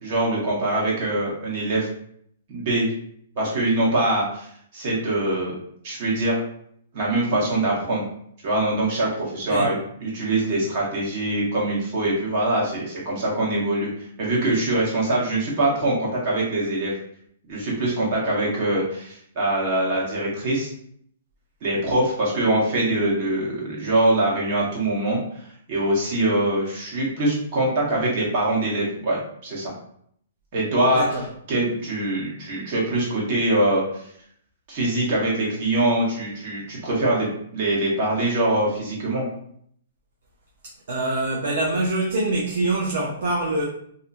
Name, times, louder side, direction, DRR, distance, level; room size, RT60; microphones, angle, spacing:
voice 1, 0.0-1.9 2.5-2.9 3.3-5.6 5.8-6.4 6.9-8.0 8.4-16.9 17.5-20.7 21.6-29.7 30.5-31.0 31.5-34.0 34.7-39.3, right 1 dB, 50° right, -4 dB, 1.2 m, -23 dB
voice 2, 40.9-43.6, right 2 dB, 70° right, -2 dB, 0.5 m, -24 dB
2.7 x 2.1 x 2.6 m, 0.66 s
hypercardioid pair, 130°, 0 cm